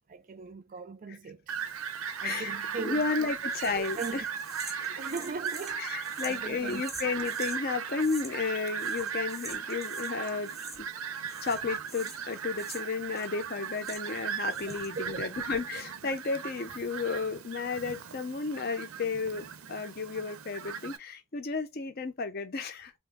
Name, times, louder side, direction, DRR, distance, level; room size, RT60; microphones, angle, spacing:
voice 1, 0.1-1.6 1.9-3.1 3.7-4.3 5.0-6.8 14.5-15.3, right 4 dB, 40° right, 0.4 m, -40 dB
Fowl, 1.5-21.0, right 7 dB, 90° right, 0.5 m, -37 dB
voice 2, 2.2-2.5 2.8-4.2 4.7-5.0 5.8-10.9 11.4-22.9, left 4 dB, 45° left, 0.6 m, -33 dB
sound 1, 3.5-7.6 8.0-8.5 8.8-10.2 10.4-11.0 11.3-14.2 14.5-15.0, right 1 dB, ahead, 0.8 m, -47 dB
3.0 x 2.1 x 3.5 m
head